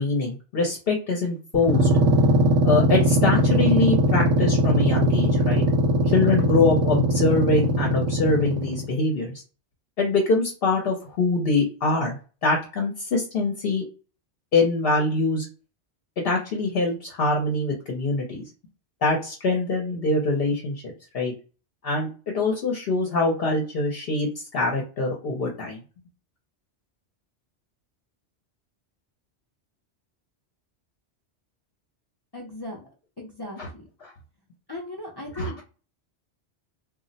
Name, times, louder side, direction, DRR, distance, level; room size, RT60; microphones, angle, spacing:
voice 1, 0.0-1.9 2.6-5.7 6.1-9.4 10.0-13.8 14.5-15.5 16.2-18.4 19.0-21.3 21.8-25.8 33.6-33.7 34.0-34.1 35.3-35.5, left 3 dB, 65° left, 0 dB, 0.8 m, -24 dB
sound 1, 1.5-8.9, equal, 80° right, 0.9 m, -21 dB
voice 2, 32.3-32.9 33.2-33.8 34.7-35.6, left 2 dB, 35° left, -2 dB, 0.4 m, -37 dB
2.3 x 2.0 x 3.8 m, 0.35 s
omnidirectional pair, 1.2 m